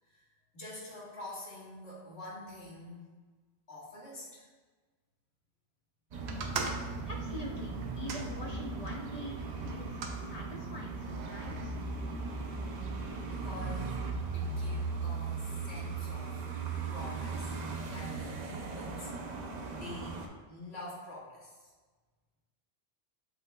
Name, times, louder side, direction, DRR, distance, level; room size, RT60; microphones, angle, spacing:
voice 1, 0.5-3.1 3.7-4.5 13.2-13.9 14.3-16.5 16.9-17.5 17.9-19.4 19.7-21.7, left 1 dB, 75° left, -7 dB, 1.7 m, -46 dB
sound 1, 6.1-20.3, right 4 dB, 55° right, 0.5 m, -38 dB
sound 2, 6.3-9.0 9.7-10.2 11.0-11.6, right 4 dB, 75° right, 0.8 m, -41 dB
voice 2, 7.0-11.7, left 1 dB, 45° left, -2 dB, 0.6 m, -44 dB
7.9 x 2.9 x 2.2 m, 1.3 s
omnidirectional pair, 1.1 m